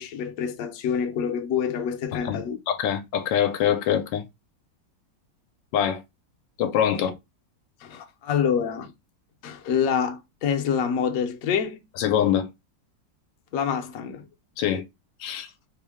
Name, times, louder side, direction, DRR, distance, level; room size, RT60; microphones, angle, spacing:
voice 1, 0.0-2.6 7.8-8.9 9.4-11.8 13.5-14.3, left 7 dB, 60° left, 0.9 m, -26 dB
voice 2, 2.2-4.2 5.7-6.0 6.6-7.1 12.0-12.5 14.6-14.8 15.2-15.5, left 9 dB, 85° left, 1.3 m, -24 dB
4.5 x 2.2 x 3.4 m
omnidirectional pair, 2.0 m